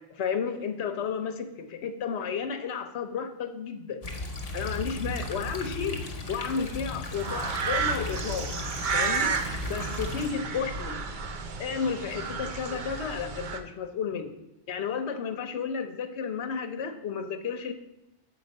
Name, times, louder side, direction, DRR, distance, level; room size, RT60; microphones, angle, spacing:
voice 1, 0.2-4.0 4.5-6.0 6.3-8.6 8.9-9.3 9.7-11.0 11.6-14.3 14.7-17.7, left 6 dB, 70° left, 8 dB, 1.0 m, -32 dB
sound 1, 4.0-10.3, left 2 dB, 35° left, 0.9 m, -36 dB
sound 2, 7.1-13.6, right 5 dB, 50° right, 0.7 m, -32 dB
7.0 x 5.2 x 5.2 m, 0.93 s
omnidirectional pair, 1.2 m